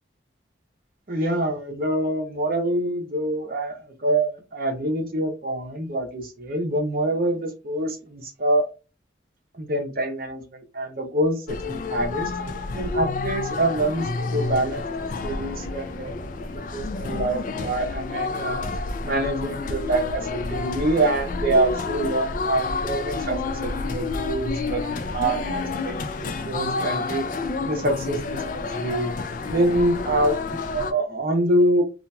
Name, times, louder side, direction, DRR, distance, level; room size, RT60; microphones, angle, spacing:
voice 1, 1.1-8.7 9.6-12.3 12.7-18.7 19.0-24.8 25.1-25.9 26.2-27.3 27.7-29.1 29.5-31.8, right 1 dB, 50° right, 4 dB, 0.8 m, -25 dB
sound 1, 11.5-30.9, left 3 dB, 45° left, 0.3 m, -29 dB
2.8 x 2.5 x 2.2 m, 0.30 s
head